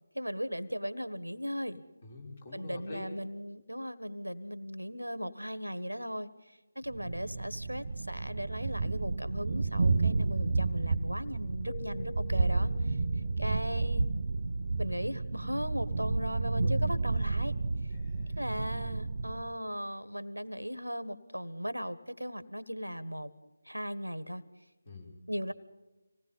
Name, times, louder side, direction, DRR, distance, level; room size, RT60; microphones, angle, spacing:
voice 1, 0.1-1.8 2.5-6.3 6.7-13.0 13.4-14.0 14.8-17.5 18.4-23.3 23.6-24.4 25.3-25.5, equal, 85° right, 15 dB, 1.4 m, -37 dB
voice 2, 2.0-3.2 17.9-18.4 24.9-25.2, left 2 dB, 35° left, 0 dB, 5.5 m, -46 dB
Thunder, 6.9-19.5, right 3 dB, 45° right, 0.7 m, -31 dB
Keyboard (musical), 11.7-13.7, left 7 dB, 5° left, 0.6 m, -48 dB
26.0 x 19.0 x 5.5 m, 1.1 s
figure-of-eight pair, 160°, 0 cm